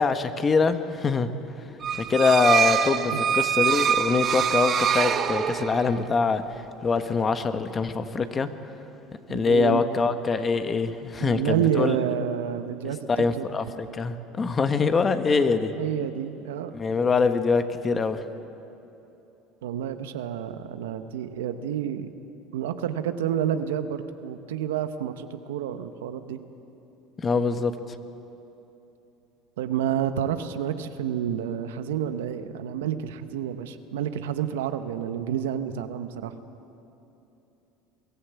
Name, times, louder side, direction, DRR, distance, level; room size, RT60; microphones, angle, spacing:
voice 1, 0.0-1.3 2.0-6.4 6.8-8.5 9.3-12.0 13.1-15.7 16.7-18.2 27.2-27.7, left 4 dB, 30° left, 9 dB, 1.2 m, -24 dB
sound 1, 1.8-6.0, right 8 dB, 40° right, 0.9 m, -24 dB
voice 2, 9.3-10.1 11.2-13.5 15.8-16.7 19.6-22.1 22.5-26.4 29.6-36.3, right 9 dB, 90° right, 9 dB, 1.0 m, -29 dB
22.5 x 14.5 x 8.3 m, 3.0 s
supercardioid pair, 90°, 0 cm